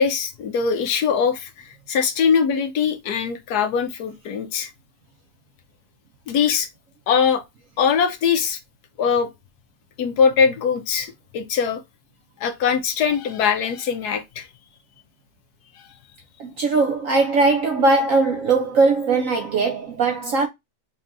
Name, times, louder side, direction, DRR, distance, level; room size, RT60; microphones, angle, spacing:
voice 1, 0.0-4.7 6.3-6.7 7.1-7.4 7.8-8.6 9.0-9.3 10.0-11.8 12.4-14.5 15.7-15.8, left 6 dB, 70° left, 1.1 m, -21 dB
voice 2, 16.4-20.5, right 3 dB, 70° right, 0.8 m, -20 dB
5.3 x 2.7 x 2.5 m
omnidirectional pair, 1.9 m